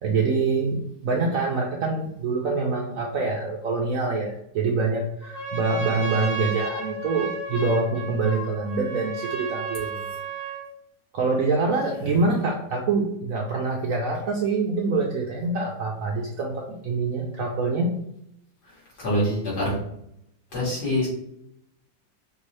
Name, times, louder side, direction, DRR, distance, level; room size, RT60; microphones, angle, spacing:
voice 1, 0.0-10.1 10.4-10.5 11.1-17.9, right 3 dB, 65° right, -1 dB, 0.8 m, -25 dB
Trumpet, 5.2-10.7, right 3 dB, 40° left, 1.0 m, -33 dB
voice 2, 18.6-19.8 20.5-21.1, equal, 65° left, -6 dB, 2.6 m, -25 dB
5.2 x 2.7 x 3.2 m, 0.76 s
omnidirectional pair, 1.9 m